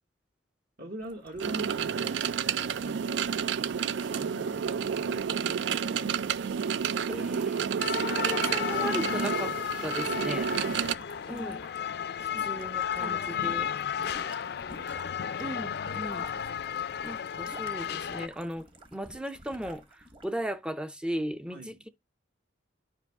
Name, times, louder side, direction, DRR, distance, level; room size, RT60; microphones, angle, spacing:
voice 1, 0.8-2.3 2.8-3.3 3.8-6.8 10.1-11.6 12.3-15.0 16.1-16.2 21.5-21.8, right 1 dB, 50° right, 1.3 m, -45 dB
sound 1, 1.0-13.2 13.5-20.4, right 1 dB, 30° right, 1.2 m, -54 dB
sound 2, 1.4-11.0, right 7 dB, 70° right, 0.4 m, -30 dB
voice 2, 7.1-9.5 9.8-10.5 11.3-11.6 12.2-13.7 15.4-16.3 17.0-21.9, equal, 5° right, 0.5 m, -37 dB
sound 3, 7.8-18.3, left 8 dB, 60° left, 0.4 m, -33 dB
10.0 x 5.4 x 3.5 m
head